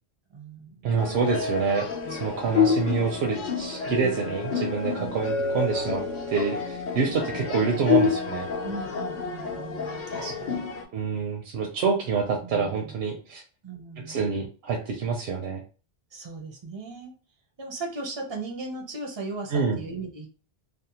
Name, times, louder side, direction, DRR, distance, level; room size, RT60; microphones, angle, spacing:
voice 1, 0.3-0.9 2.0-2.5 4.0-4.3 5.0-5.2 7.2-7.5 8.6-10.7 12.4-12.9 13.6-14.4 16.1-17.1 17.6-20.3, right 3 dB, 40° right, 1 dB, 0.4 m, -38 dB
voice 2, 0.8-8.5 10.9-13.4 14.0-15.6 19.5-19.8, right 5 dB, 75° right, 1 dB, 0.8 m, -27 dB
sound 1, 1.0-10.8, left 5 dB, 55° left, 0.6 m, -28 dB
2.6 x 2.1 x 2.7 m, 0.36 s
omnidirectional pair, 1.1 m